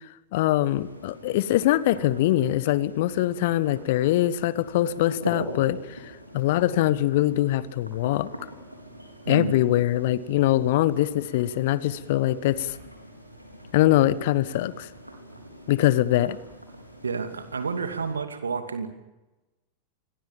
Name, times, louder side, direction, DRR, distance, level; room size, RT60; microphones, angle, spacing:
voice 1, 0.3-8.3 9.3-12.8 13.7-14.9 15.7-16.4, left 14 dB, 50° left, 18 dB, 1.2 m, -23 dB
sound 1, 0.6-18.1, equal, 90° right, 4.3 m, -43 dB
voice 2, 17.0-18.9, right 5 dB, 75° right, 8 dB, 2.5 m, -30 dB
27.5 x 21.5 x 7.3 m, 1.1 s
figure-of-eight pair, 90°, 0 cm